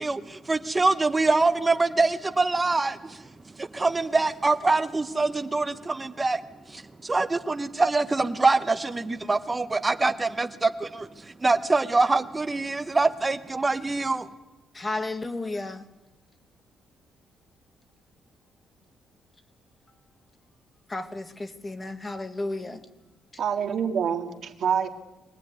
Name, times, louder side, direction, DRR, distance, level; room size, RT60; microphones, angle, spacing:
voice 1, 0.0-3.3 3.6-6.4 6.7-14.3, right 3 dB, 15° right, 10 dB, 0.8 m, -24 dB
voice 2, 14.7-15.8 20.9-22.8, left 2 dB, 15° left, 8 dB, 1.4 m, -33 dB
voice 3, 23.4-24.9, right 7 dB, 50° right, 4 dB, 2.0 m, -26 dB
24.0 x 18.0 x 9.4 m, 1.1 s
cardioid pair, 170°, 0 cm